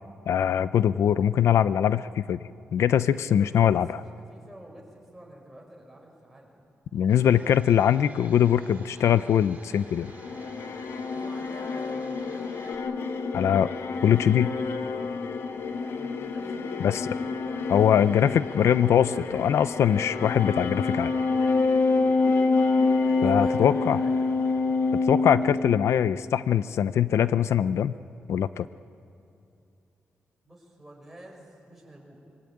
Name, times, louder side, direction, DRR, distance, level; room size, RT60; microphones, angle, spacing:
voice 1, 0.3-2.4 2.7-3.9 6.9-10.1 13.3-13.7 14.0-14.5 16.8-17.0 17.7-21.1 23.2-24.0 25.1-28.0 28.3-28.7, left 9 dB, 85° left, 14 dB, 0.5 m, -22 dB
voice 2, 3.1-7.1 11.1-12.8 15.8-17.9 18.4-19.3 22.0-22.3 23.1-24.4 30.4-32.2, right 1 dB, 5° right, -2 dB, 5.8 m, -48 dB
Domestic sounds home sounds, 7.1-12.8, right 3 dB, 35° right, 3.2 m, -51 dB
sound 1, 9.9-26.3, left 3 dB, 65° left, 1.5 m, -27 dB
26.0 x 23.5 x 8.8 m, 2.7 s
wide cardioid pair, 170°, 5 cm